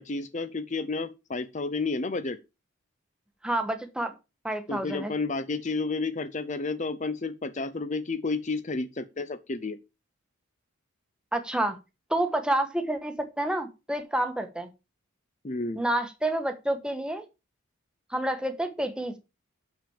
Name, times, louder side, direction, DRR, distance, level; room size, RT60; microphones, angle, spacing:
voice 1, 0.0-2.4 4.7-9.8 15.4-15.8, left 3 dB, 35° left, 0.6 m, -31 dB
voice 2, 3.4-4.1 4.4-5.1 11.3-11.8 12.1-14.7 15.7-17.2 18.1-19.2, right 1 dB, 5° right, 1.3 m, -29 dB
6.9 x 6.2 x 7.1 m
head